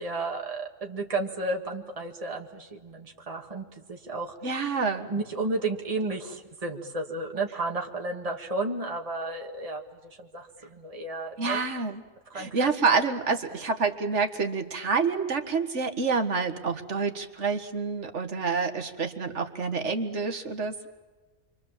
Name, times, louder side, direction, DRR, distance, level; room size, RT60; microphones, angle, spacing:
voice 1, 0.0-4.4 5.1-11.6 12.3-13.0, right 2 dB, 25° right, 2 dB, 2.0 m, -33 dB
voice 2, 4.4-5.1 11.4-12.0 12.3-20.9, right 4 dB, 55° right, 5 dB, 2.0 m, -28 dB
28.5 x 24.5 x 7.4 m, 1.3 s
omnidirectional pair, 1.4 m